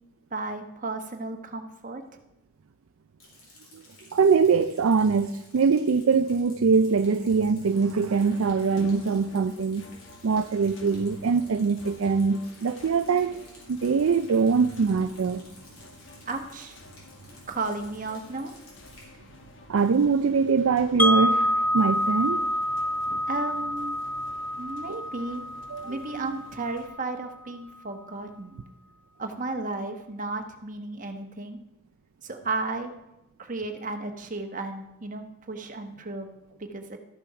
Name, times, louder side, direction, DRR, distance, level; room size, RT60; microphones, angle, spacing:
voice 1, 0.3-2.0 16.3-16.8 17.5-18.5 23.3-24.0 24.6-25.4 25.8-28.6 29.2-31.6 32.2-32.9 33.4-36.3 36.6-37.0, right 3 dB, 35° right, 5 dB, 1.1 m, -34 dB
Rain, 3.2-19.1, left 2 dB, 70° left, 4.4 m, -54 dB
voice 2, 4.1-9.9 10.2-13.4 13.7-15.4 19.7-22.5 23.1-23.2 24.9-25.0 25.7-26.4, right 5 dB, 65° right, 9 dB, 0.4 m, -23 dB
sound 1, 8.2-26.9, left 1 dB, 55° left, 1.2 m, -50 dB
Wind chime, 21.0-27.0, left 1 dB, 5° left, 0.4 m, -27 dB
12.5 x 7.0 x 5.7 m, 0.90 s
head